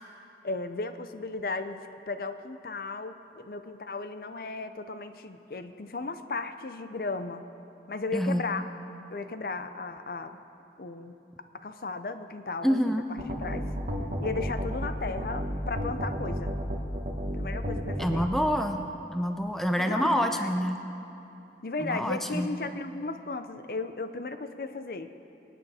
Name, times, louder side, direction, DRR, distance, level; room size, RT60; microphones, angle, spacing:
voice 1, 0.4-7.4 7.9-8.7 9.1-10.4 10.8-11.1 11.6-13.7 14.2-16.5 17.3-18.3 19.8-20.5 21.6-25.1, left 3 dB, 55° left, 9 dB, 0.5 m, -35 dB
voice 2, 8.1-8.5 12.6-13.1 18.0-18.8 19.1-20.8 21.8-22.5, equal, ahead, 5 dB, 0.5 m, -27 dB
sound 1, 13.2-18.2, equal, 45° right, 1.3 m, -32 dB
24.5 x 8.5 x 4.2 m, 2.9 s
head